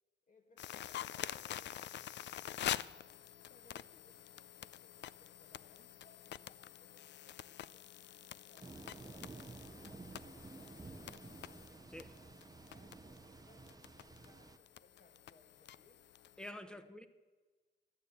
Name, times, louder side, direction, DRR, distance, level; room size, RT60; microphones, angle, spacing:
voice 1, 0.3-3.1 3.3-11.5 11.9-16.1 16.6-16.9, left 2 dB, 45° left, 2.0 m, -69 dB
sound 1, 0.6-16.5, left 11 dB, 70° left, 0.4 m, -47 dB
sound 2, 8.6-14.6, right 3 dB, 20° right, 0.6 m, -53 dB
voice 2, 16.4-17.1, left 1 dB, 5° left, 0.9 m, -48 dB
12.5 x 9.0 x 8.0 m
cardioid pair, 105°, 19 cm